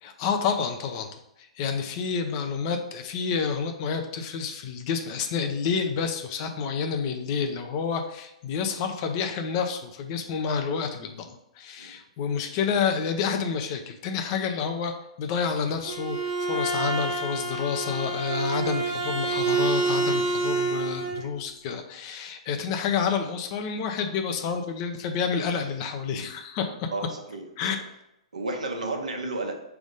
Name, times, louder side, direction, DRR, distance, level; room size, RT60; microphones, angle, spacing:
voice 1, 0.0-1.2 1.5-26.9 27.6-27.8, left 6 dB, 40° left, 5 dB, 0.8 m, -29 dB
Bowed string instrument, 15.7-21.2, right 3 dB, 35° right, 1.2 m, -27 dB
voice 2, 26.9-27.7 28.3-29.6, right 2 dB, 80° right, 2 dB, 1.1 m, -32 dB
5.1 x 3.5 x 5.3 m, 0.84 s
figure-of-eight pair, 115°, 4 cm